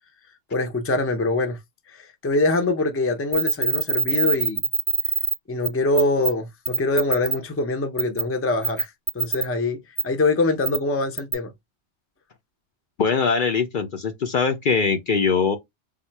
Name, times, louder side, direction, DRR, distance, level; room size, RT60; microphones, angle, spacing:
voice 1, 0.5-1.6 1.9-4.6 5.5-9.8 10.0-11.5, left 2 dB, 15° left, 0.5 m, -24 dB
sound 1, 3.3-5.3 5.6-5.7 6.0-6.3 6.7-7.4 8.0-8.2 8.6-9.4 10.0-10.1 10.6-10.8 11.2-11.3, right 6 dB, 35° right, 0.3 m, -23 dB
voice 2, 13.0-15.6, left 5 dB, 55° left, 0.7 m, -22 dB
3.6 x 2.4 x 4.4 m
omnidirectional pair, 1.1 m